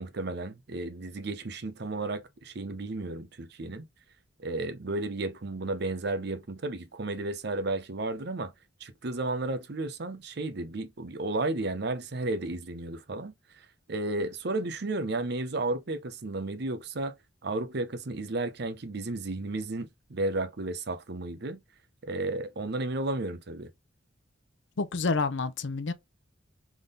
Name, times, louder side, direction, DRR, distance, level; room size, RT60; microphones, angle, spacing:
voice 1, 0.0-3.8 4.4-8.5 8.8-13.3 13.9-17.1 17.4-21.6 22.0-23.7, right 2 dB, 55° right, 0.7 m, -33 dB
voice 2, 24.8-25.9, left 3 dB, 70° left, 0.6 m, -28 dB
3.7 x 3.5 x 3.8 m
head